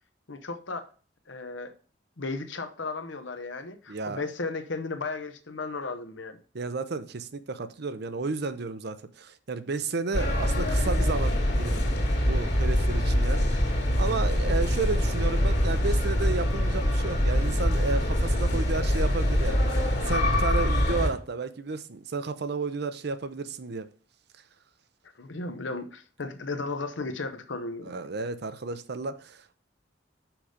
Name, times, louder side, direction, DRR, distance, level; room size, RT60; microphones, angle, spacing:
voice 1, 0.3-0.8 1.3-1.7 2.2-6.4 25.2-27.9, left 3 dB, 85° left, 0.9 m, -35 dB
voice 2, 3.9-4.2 6.5-11.9 12.1-13.5 14.0-23.9 27.8-29.6, right 4 dB, 60° right, 0.7 m, -32 dB
sound 1, 10.1-21.1, equal, 60° left, 2.0 m, -24 dB
6.1 x 4.9 x 6.5 m
head